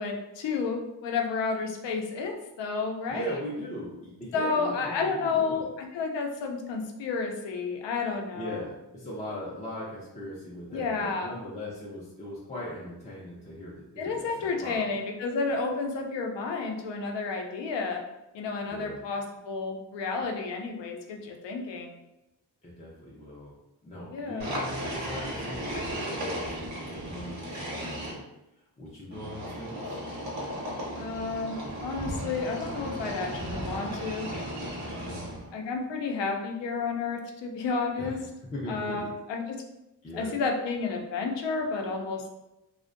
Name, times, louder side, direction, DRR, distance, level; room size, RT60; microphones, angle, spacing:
voice 1, 0.0-3.4 4.3-8.6 10.7-11.3 14.0-18.0 18.3-21.9 24.1-24.6 31.0-34.3 35.5-38.2 38.7-39.4 40.1-42.3, left 4 dB, 85° left, 2 dB, 0.5 m, -31 dB
voice 2, 3.1-5.6 8.3-14.9 18.7-19.0 22.6-23.5 23.8-28.2 28.8-30.0 35.0-35.3 38.0-38.2 38.5-39.1 40.0-40.4, equal, 20° left, -6 dB, 0.3 m, -39 dB
sound 1, 24.4-28.1 29.1-35.5, equal, 40° right, 0.6 m, -35 dB
2.5 x 2.1 x 2.5 m, 0.92 s
wide cardioid pair, 140°, 42 cm